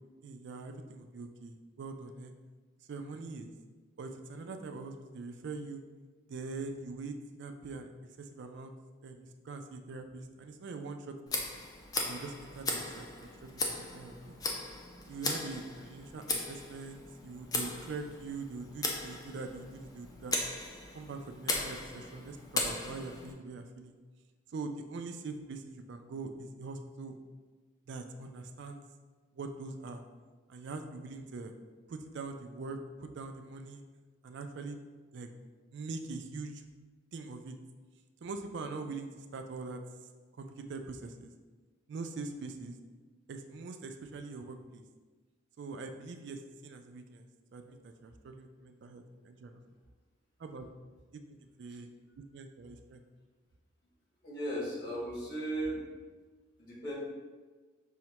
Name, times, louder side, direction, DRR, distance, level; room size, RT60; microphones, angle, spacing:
voice 1, 0.2-2.3 2.9-3.5 4.0-5.8 6.3-7.9 8.2-8.7 9.0-11.4 12.0-14.4 15.1-20.4 20.9-24.0 24.5-27.2 27.9-28.8 29.3-30.0 30.5-31.5 31.9-33.8 34.2-34.8 35.1-35.3 35.7-36.6 37.1-37.6 38.2-39.8 40.4-41.3 41.9-42.8 43.3-44.8 45.6-47.2 47.5-49.6 50.4-50.7 51.1-51.9 52.2-53.0, right 3 dB, 60° right, 6 dB, 0.3 m, -43 dB
Tick, 11.3-23.3, left 2 dB, 20° left, 0.3 m, -38 dB
voice 2, 54.2-55.8 56.6-56.9, right 1 dB, 55° left, -7 dB, 1.2 m, -36 dB
5.5 x 2.1 x 2.9 m, 1.3 s
head